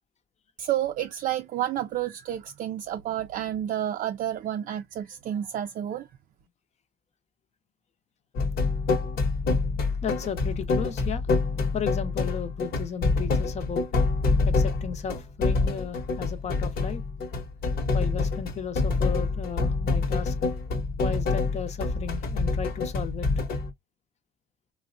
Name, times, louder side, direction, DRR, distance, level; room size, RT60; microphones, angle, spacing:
voice 1, 0.6-6.1, right 11 dB, 50° right, 0.4 m, -30 dB
sound 1, 8.3-23.7, left 3 dB, 65° left, 1.0 m, -26 dB
voice 2, 10.0-11.2 11.7-13.9 14.4-17.0 17.9-20.3 21.0-23.3, left 7 dB, 40° left, 0.7 m, -35 dB
3.3 x 2.1 x 2.5 m
cardioid pair, 110°, 17 cm